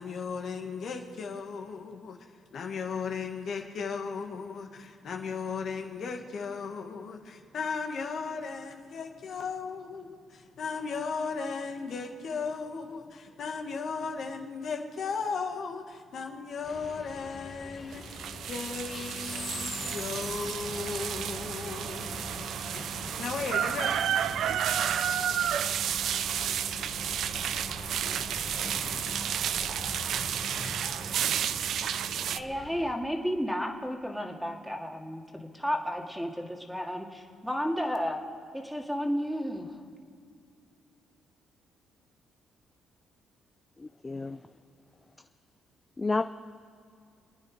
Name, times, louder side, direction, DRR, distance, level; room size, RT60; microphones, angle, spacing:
voice 1, 0.0-2.2 2.5-22.4 23.2-24.0, left 5 dB, 60° left, 2.0 m, -36 dB
sound 1, 16.6-32.9, left 3 dB, 40° left, 1.7 m, -43 dB
sound 2, 17.9-32.4, right 9 dB, 70° right, 0.5 m, -31 dB
voice 2, 32.3-38.2 38.5-39.8, equal, ahead, 2.3 m, -32 dB
voice 3, 43.8-44.4 46.0-46.2, left 3 dB, 20° left, 0.5 m, -30 dB
28.5 x 9.6 x 5.0 m
cardioid pair, 90°, 0 cm